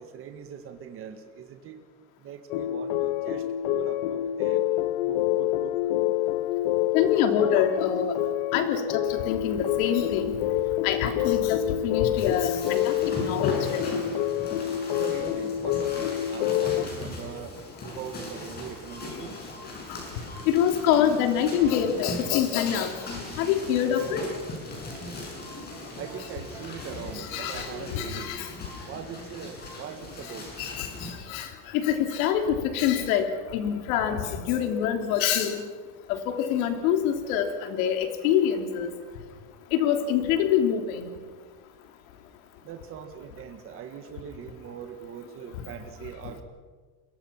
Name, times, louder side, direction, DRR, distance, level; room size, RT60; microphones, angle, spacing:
voice 1, 0.0-1.8 2.2-4.6 5.0-5.8 15.0-19.4 26.0-28.3 28.9-30.5 42.6-46.4, right 8 dB, 30° right, 6 dB, 1.8 m, -41 dB
sound 1, 2.5-16.8, left 12 dB, 50° left, 0.9 m, -27 dB
voice 2, 6.9-8.1 8.5-8.8 9.1-10.3 10.8-11.6 11.8-12.9 13.2-14.0 20.5-22.9 23.4-24.2 27.3-27.7 27.9-28.5 30.6-30.9 31.3-31.5 31.7-35.6 36.1-38.9 39.7-41.1, left 9 dB, 80° left, 6 dB, 3.3 m, -25 dB
sound 2, 12.2-31.1, left 2 dB, 25° left, 6.6 m, -38 dB
30.0 x 22.5 x 5.8 m, 1.4 s
cardioid pair, 175°, 41 cm